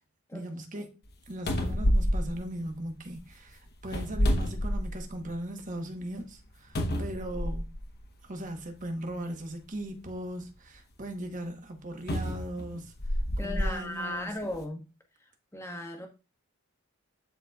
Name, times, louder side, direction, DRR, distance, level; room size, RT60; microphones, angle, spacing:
voice 1, 0.3-0.9 1.3-7.7 8.2-12.9 13.4-14.4, right 1 dB, 35° right, 1.1 m, -38 dB
sound 1, 1.1-1.2 1.5-3.2 3.8-5.3 5.7-5.8 6.7-7.9 8.8-8.9 12.1-13.7 14.4-14.6, equal, 50° left, 1.0 m, -28 dB
voice 2, 13.4-14.9 15.5-16.1, left 1 dB, 10° left, 1.0 m, -36 dB
11.5 x 4.0 x 2.3 m
head